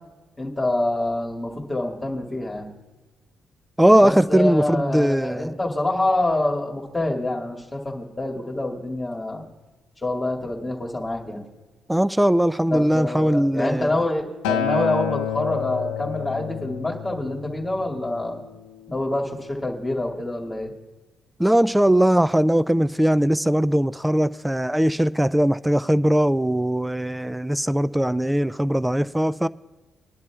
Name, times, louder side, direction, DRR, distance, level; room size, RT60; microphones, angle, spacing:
voice 1, 0.4-2.7 4.0-9.5 10.0-11.4 12.7-18.4 18.9-20.7, left 2 dB, 20° left, 2.2 m, -26 dB
voice 2, 3.8-5.6 11.9-14.1 21.4-29.5, right 1 dB, 10° right, 0.3 m, -20 dB
Acoustic guitar, 14.4-18.7 19.6-19.7, left 9 dB, 90° left, 0.4 m, -29 dB
23.5 x 10.5 x 2.4 m
hypercardioid pair, 50°, 0 cm